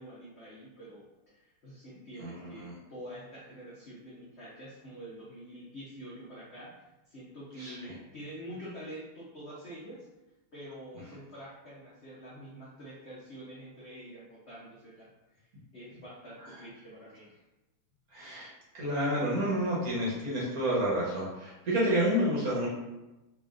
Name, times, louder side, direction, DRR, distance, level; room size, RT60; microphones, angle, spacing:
voice 1, 0.0-6.7 7.1-10.1 10.5-15.5 15.7-17.4, equal, 80° left, -8 dB, 0.6 m, -46 dB
voice 2, 2.2-2.7 7.6-7.9 18.1-22.7, equal, 50° right, -6 dB, 1.3 m, -30 dB
4.2 x 2.9 x 2.5 m, 0.98 s
omnidirectional pair, 2.4 m